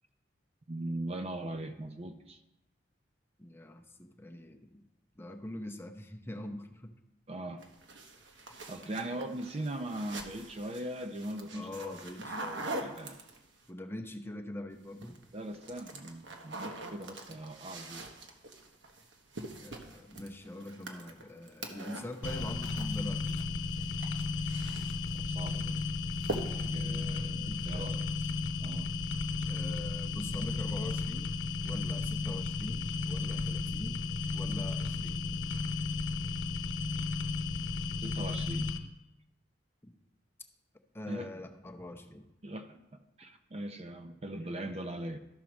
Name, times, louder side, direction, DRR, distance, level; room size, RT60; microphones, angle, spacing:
voice 1, 0.7-2.4 7.3-7.7 8.7-12.0 12.8-13.2 15.3-18.1 25.2-25.8 26.4-28.1 28.6-28.9 38.0-38.7 41.1-41.3 42.4-45.2, right 1 dB, 35° right, 7 dB, 0.5 m, -40 dB
voice 2, 3.4-4.9 5.2-7.0 8.8-9.0 11.5-12.7 13.7-15.2 19.6-23.4 27.3-28.3 29.4-34.1 34.3-35.4 40.9-42.3, left 1 dB, 15° left, 4 dB, 0.7 m, -44 dB
sound 1, 7.6-13.7 14.8-15.2 15.5-23.4 23.7-25.2 25.5-25.8 26.2-26.8, right 2 dB, 75° right, 1.2 m, -43 dB
sound 2, 22.2-38.8, left 4 dB, 80° left, 0.8 m, -34 dB
12.5 x 4.6 x 6.2 m, 0.95 s
head